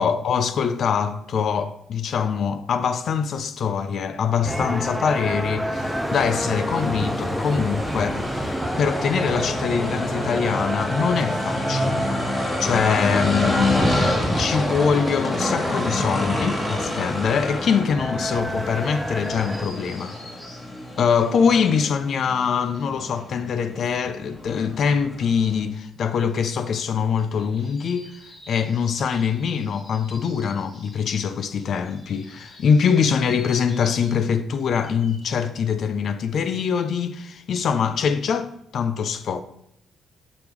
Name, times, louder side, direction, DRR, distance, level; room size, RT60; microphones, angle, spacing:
voice 1, 0.0-8.3 8.8-12.1 12.6-20.2 21.0-28.1 28.5-39.4, left 6 dB, 60° left, 0.4 m, -23 dB
sound 1, 4.4-19.7, equal, ahead, 0.5 m, -29 dB
sound 2, 5.7-25.6, left 1 dB, 20° left, 1.4 m, -29 dB
sound 3, 19.2-23.7 24.0-35.3, left 2 dB, 45° left, 2.0 m, -49 dB
6.9 x 3.5 x 4.5 m
cardioid pair, 90°, 0 cm